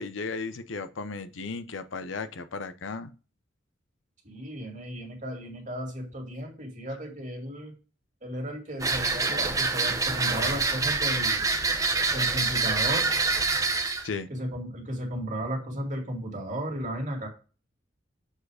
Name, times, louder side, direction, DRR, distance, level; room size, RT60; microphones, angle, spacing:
voice 1, 0.0-3.1 14.0-14.3, left 4 dB, 80° left, 0.7 m, -35 dB
voice 2, 4.2-7.7 8.2-11.4 12.1-13.1 14.3-17.3, right 1 dB, 40° right, 2.4 m, -34 dB
sound 1, 8.8-14.1, right 3 dB, 20° right, 0.8 m, -26 dB
7.0 x 4.7 x 4.8 m
head